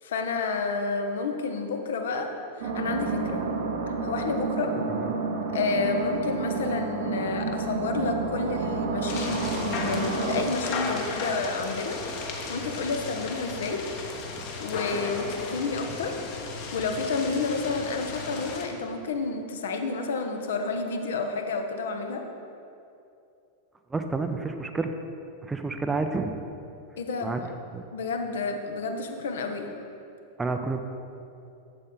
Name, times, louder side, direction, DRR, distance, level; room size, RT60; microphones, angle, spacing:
voice 1, 0.0-2.3 2.6-3.4 4.0-4.7 5.5-12.0 12.5-13.8 14.6-16.2 16.7-22.2 27.0-27.4 27.9-29.7, left 4 dB, 60° left, 5 dB, 0.8 m, -30 dB
sound 1, 2.6-10.4, right 4 dB, 55° right, 0.9 m, -30 dB
sound 2, 9.1-18.7, left 4 dB, 45° left, 1.1 m, -35 dB
voice 2, 23.9-24.9 25.4-26.4 27.2-27.4 27.7-27.8 30.4-30.8, right 3 dB, 15° right, 6 dB, 0.5 m, -29 dB
7.8 x 7.5 x 3.8 m, 2.7 s
figure-of-eight pair, 90°, 0 cm